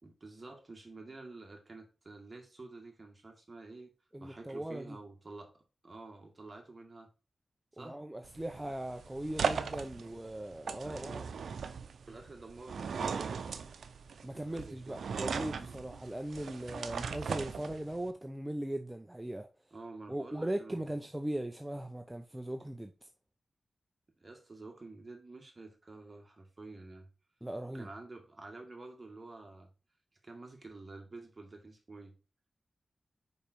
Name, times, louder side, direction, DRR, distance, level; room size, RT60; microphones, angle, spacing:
voice 1, 0.0-3.9 4.2-7.1 7.7-8.0 10.8-11.3 12.0-13.6 14.4-15.1 19.7-21.0 24.2-27.1 27.7-29.7 30.2-32.2, right 3 dB, 35° right, 2.0 m, -49 dB
voice 2, 4.1-5.0 7.8-11.3 14.2-19.5 20.1-23.1 27.4-27.9, right 1 dB, 15° right, 0.6 m, -39 dB
sound 1, 8.2-18.1, right 6 dB, 90° right, 0.6 m, -38 dB
5.3 x 5.1 x 4.5 m
cardioid pair, 65°, 0 cm